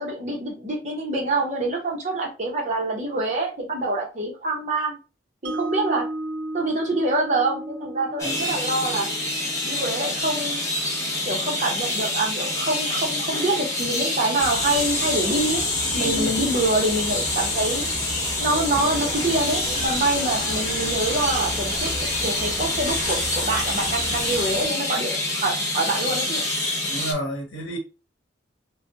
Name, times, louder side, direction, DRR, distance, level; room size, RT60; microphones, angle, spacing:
voice 1, 0.0-5.0 5.4-6.1 6.5-9.1 9.6-10.6 11.3-15.6 15.9-17.9 18.4-21.9 22.2-26.4, right 2 dB, 35° right, 0.8 m, -26 dB
Mallet percussion, 5.4-11.6, right 1 dB, 70° right, 0.5 m, -35 dB
sound 1, 8.2-27.1, left 1 dB, 15° left, 0.6 m, -27 dB
sound 2, 14.4-24.7, left 2 dB, 35° left, 1.0 m, -30 dB
voice 2, 16.0-16.3 26.9-27.8, right 1 dB, 75° left, 0.9 m, -30 dB
3.2 x 2.2 x 2.8 m
head